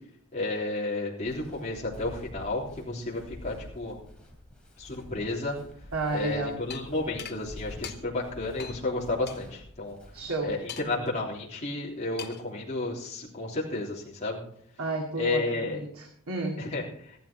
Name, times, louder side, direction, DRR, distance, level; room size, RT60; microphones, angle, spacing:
voice 1, 0.3-4.0 4.8-5.6 6.1-10.0 10.4-14.4 15.2-15.8 16.6-17.2, left 2 dB, 30° left, -6 dB, 3.6 m, -32 dB
Walk footsteps, 1.2-10.9, left 1 dB, 5° left, 3.2 m, -48 dB
voice 2, 5.9-6.6 10.1-10.6 14.8-16.7, right 2 dB, 80° right, 0 dB, 2.3 m, -32 dB
sound 1, 6.7-6.8 7.2-7.4 7.8-8.0 8.6-8.8 9.3-9.4 10.7-11.1 12.2-12.5, left 9 dB, 50° left, 1.1 m, -40 dB
15.0 x 12.0 x 4.5 m, 0.64 s
head